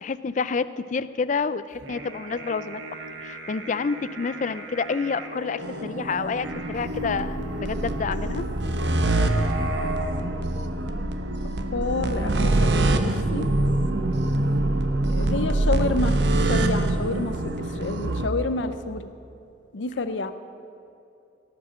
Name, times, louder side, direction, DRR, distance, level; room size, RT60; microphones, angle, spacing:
voice 1, 0.0-2.8 3.2-8.4, left 5 dB, 40° left, 14 dB, 0.4 m, -28 dB
sound 1, 1.7-10.2, right 1 dB, 85° right, 1.4 m, -36 dB
sound 2, 5.6-18.3, right 2 dB, 65° right, 0.8 m, -25 dB
voice 2, 11.7-13.5 15.1-16.1 16.5-17.3 17.8-19.1 19.7-20.3, left 3 dB, 85° left, 10 dB, 0.7 m, -28 dB
17.5 x 6.1 x 7.4 m, 2.7 s
head